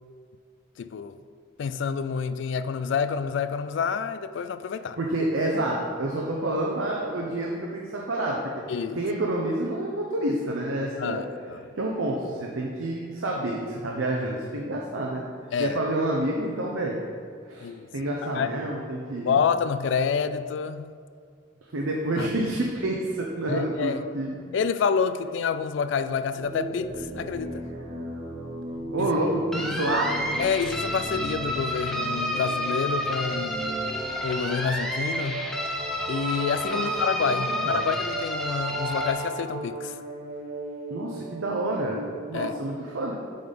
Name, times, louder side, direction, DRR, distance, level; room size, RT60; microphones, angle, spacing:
voice 1, 0.8-1.2 1.6-5.0 8.7-9.0 11.0-11.6 15.5-15.8 17.6-17.9 18.4-18.5 19.2-20.9 22.2-22.3 23.5-24.0 24.5-27.7 29.0-29.1 30.4-33.6 34.2-35.4 36.1-39.9 42.3-42.5, left 6 dB, 65° left, 12 dB, 0.3 m, -28 dB
voice 2, 5.0-8.4 8.9-11.2 11.8-15.2 15.6-17.0 17.5-19.4 21.7-24.4 28.9-30.1 36.7-36.9 37.2-37.8 40.9-42.0 42.3-43.1, right 1 dB, 90° right, -1 dB, 0.7 m, -28 dB
sound 1, 26.3-42.5, right 2 dB, 30° right, 1.8 m, -36 dB
sound 2, 29.5-39.1, equal, ahead, 0.6 m, -30 dB
7.5 x 3.9 x 5.2 m, 2.2 s
head